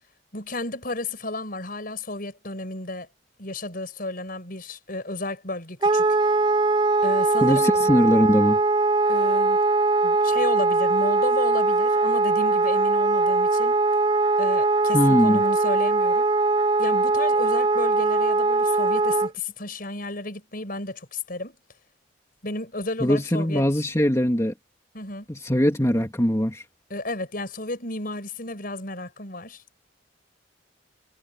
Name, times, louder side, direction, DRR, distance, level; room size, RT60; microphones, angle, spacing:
voice 1, 0.3-3.1 3.4-6.3 7.0-7.7 9.1-9.6 10.0-13.8 14.4-16.3 16.8-21.6 22.4-23.6 24.9-25.3 26.9-29.6, left 2 dB, 50° left, 5.7 m, -32 dB
Wind instrument woodwind instrument, 5.8-19.3, right 3 dB, 25° right, 0.4 m, -21 dB
voice 2, 7.4-8.6 14.9-15.4 23.0-24.5 25.3-26.6, equal, 15° left, 2.4 m, -21 dB
head